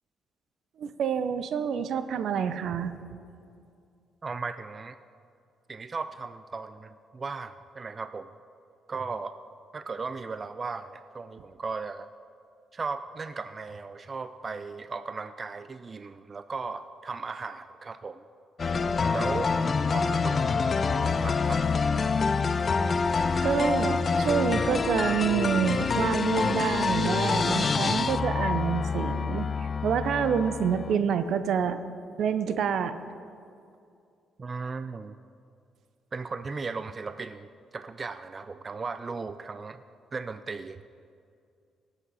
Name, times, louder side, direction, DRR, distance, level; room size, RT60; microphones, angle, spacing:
voice 1, 0.8-2.9 23.4-29.5 29.8-31.8 32.2-32.9, right 7 dB, 70° right, 11 dB, 0.7 m, -27 dB
voice 2, 4.2-5.0 5.7-8.3 8.9-9.4 9.7-12.1 12.7-18.2 19.1-19.5 19.9-20.7 21.0-21.6 34.4-35.1 36.1-37.5 37.7-39.8 40.1-40.8, right 4 dB, 35° right, 11 dB, 0.4 m, -36 dB
sound 1, 18.6-31.0, left 4 dB, 40° left, 0.4 m, -26 dB
18.5 x 8.2 x 4.2 m, 2.4 s
cardioid pair, 90°, 0 cm